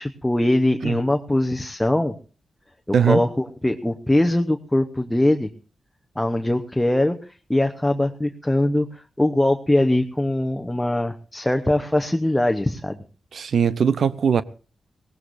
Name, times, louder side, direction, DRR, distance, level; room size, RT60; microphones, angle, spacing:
voice 1, 0.0-2.1 2.9-5.5 6.2-7.2 7.5-13.0, left 1 dB, 10° left, 0.9 m, -21 dB
voice 2, 2.9-3.2 13.3-14.4, right 7 dB, 75° right, 0.7 m, -20 dB
21.5 x 17.5 x 2.6 m
cardioid pair, 90°, 0 cm